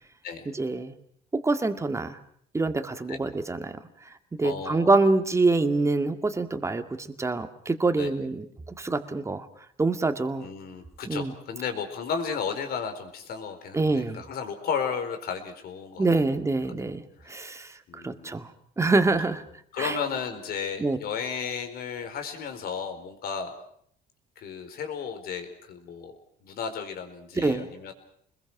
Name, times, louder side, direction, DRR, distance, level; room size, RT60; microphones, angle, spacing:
voice 1, 0.5-0.9 1.3-2.2 2.5-3.7 4.4-8.5 8.8-9.5 9.8-10.5 11.1-11.3 13.7-14.2 16.0-17.0 17.3-17.7 17.9-18.5 18.8-19.4 19.8-20.0 20.8-21.0 27.4-27.7, right 3 dB, 15° right, 8 dB, 2.1 m, -25 dB
voice 2, 4.4-5.1 8.0-8.1 10.4-16.1 17.2-17.3 17.9-18.4 19.7-23.7 24.4-26.2 26.4-27.9, left 6 dB, 65° left, 7 dB, 4.7 m, -34 dB
29.0 x 21.5 x 6.1 m, 0.65 s
cardioid pair, 110°, 17 cm